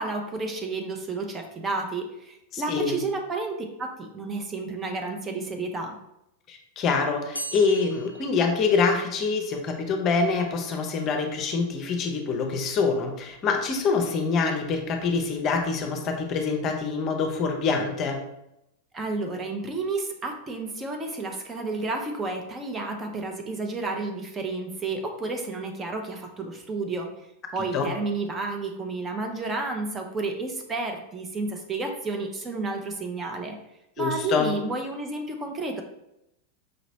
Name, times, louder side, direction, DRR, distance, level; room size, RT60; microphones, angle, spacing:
voice 1, 0.0-5.9 18.9-27.1 27.5-33.6 34.0-35.8, right 3 dB, 20° right, 3 dB, 0.6 m, -31 dB
voice 2, 2.5-3.0 6.5-18.2 27.7-27.9 34.0-34.5, left 4 dB, 35° left, 4 dB, 0.6 m, -25 dB
sound 1, 7.3-9.3, right 1 dB, 90° left, 0.4 m, -39 dB
5.1 x 2.9 x 2.8 m, 0.84 s
figure-of-eight pair, 90°, 0 cm